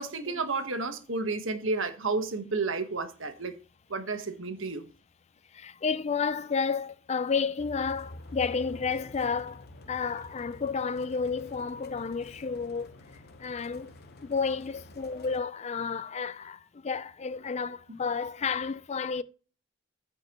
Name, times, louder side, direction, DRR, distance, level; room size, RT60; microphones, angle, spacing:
voice 1, 0.0-3.5 3.9-4.9, right 3 dB, 60° right, 1.3 m, -31 dB
voice 2, 5.5-12.9 13.4-13.9 14.2-19.2, left 5 dB, 30° left, 0.4 m, -31 dB
sound 1, 7.6-15.4, left 1 dB, 50° left, 1.0 m, -48 dB
14.5 x 5.2 x 3.0 m
head